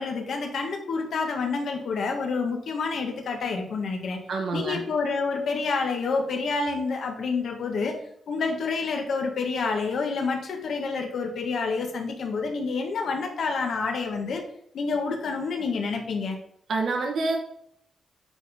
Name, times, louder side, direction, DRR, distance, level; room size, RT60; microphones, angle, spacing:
voice 1, 0.0-4.2 4.5-8.0 8.3-14.4 14.7-16.4, left 4 dB, 65° left, 3 dB, 1.5 m, -28 dB
voice 2, 4.3-4.8 16.7-17.4, right 3 dB, 65° right, 2 dB, 1.2 m, -27 dB
8.8 x 4.1 x 3.6 m, 0.70 s
wide cardioid pair, 135°, 0 cm